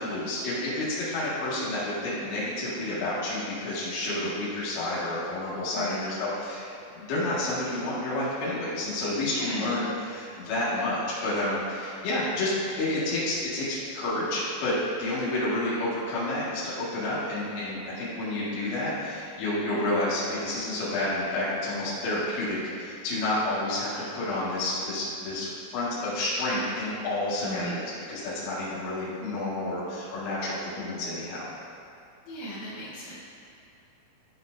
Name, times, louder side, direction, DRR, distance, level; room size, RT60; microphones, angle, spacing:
voice 1, 0.0-6.7 7.0-31.5, left 1 dB, 70° left, -9 dB, 4.2 m, -30 dB
voice 2, 5.7-6.2 9.3-9.8 15.5-15.9 19.7-19.9 27.4-27.8 32.3-33.1, equal, 90° left, -9 dB, 4.1 m, -37 dB
13.0 x 6.4 x 2.6 m, 2.7 s
omnidirectional pair, 5.4 m